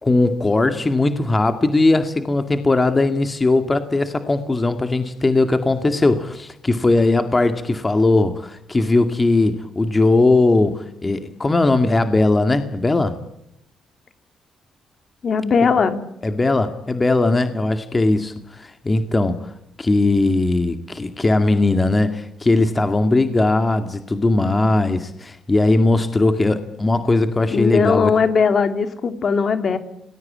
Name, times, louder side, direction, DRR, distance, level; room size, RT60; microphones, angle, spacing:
voice 1, 0.0-13.2 16.2-19.5 19.8-28.1, left 2 dB, 20° left, 8 dB, 2.1 m, -19 dB
voice 2, 15.2-16.0 27.5-29.8, left 5 dB, 50° left, 9 dB, 2.8 m, -18 dB
27.5 x 20.0 x 8.7 m, 0.81 s
cardioid pair, 90°, 0 cm